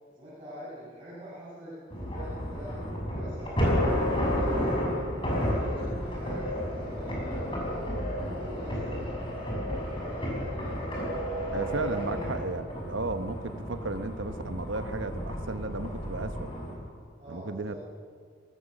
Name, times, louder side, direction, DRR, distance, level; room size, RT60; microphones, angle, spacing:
voice 1, 0.1-2.7 3.1-5.0 5.4-6.5 6.8-7.7 8.2-11.1 11.6-12.3 17.2-17.8, equal, 30° right, -11 dB, 7.2 m, -45 dB
sound 1, 1.9-16.7, equal, 25° left, 6.4 m, -31 dB
voice 2, 11.5-16.5 17.3-17.8, right 2 dB, 90° right, 8 dB, 1.3 m, -34 dB
24.0 x 18.5 x 6.7 m, 2.1 s
head